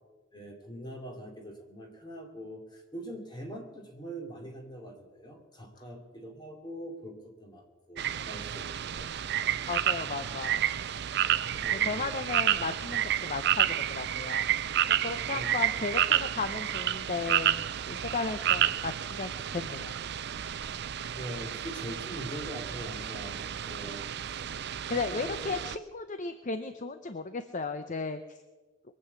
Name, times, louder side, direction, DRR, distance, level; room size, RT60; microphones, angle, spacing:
voice 1, 0.3-9.1 11.5-12.2 15.3-15.5 21.1-24.0 25.1-25.5, right 1 dB, 20° left, 2 dB, 2.8 m, -43 dB
sound 1, 8.0-25.8, right 11 dB, 60° right, 0.5 m, -30 dB
voice 2, 9.7-10.7 11.7-14.5 14.9-20.0 24.9-28.4, left 4 dB, 40° left, 10 dB, 0.7 m, -35 dB
22.5 x 7.7 x 8.2 m, 1.3 s
head